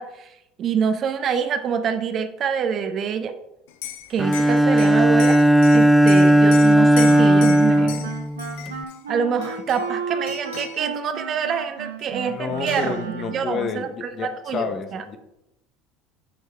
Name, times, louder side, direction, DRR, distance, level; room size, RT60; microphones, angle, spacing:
voice 1, 0.0-3.4 4.1-5.4 5.7-8.1 9.1-15.0, right 7 dB, 45° right, 9 dB, 0.7 m, -26 dB
Liquid, 3.7-9.0 9.4-10.0 10.3-10.8 12.0-12.1 12.4-13.0, left 11 dB, 70° left, 0.5 m, -37 dB
Bowed string instrument, 4.2-8.8, right 1 dB, ahead, 0.4 m, -16 dB
Wind instrument woodwind instrument, 6.9-13.6, right 6 dB, 90° right, 1.0 m, -33 dB
voice 2, 12.3-15.2, left 6 dB, 45° left, 8 dB, 1.0 m, -30 dB
10.5 x 4.6 x 3.4 m, 0.88 s
hypercardioid pair, 75°, 0 cm